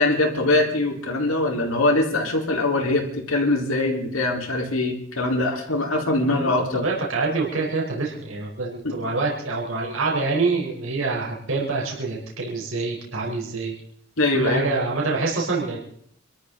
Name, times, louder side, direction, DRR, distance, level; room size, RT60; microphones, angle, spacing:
voice 1, 0.0-6.8 8.8-9.0 14.2-14.7, left 2 dB, 85° left, 1 dB, 4.0 m, -22 dB
voice 2, 6.3-13.7 14.3-15.8, right 3 dB, 80° right, -3 dB, 4.2 m, -26 dB
27.0 x 13.5 x 3.9 m, 0.67 s
head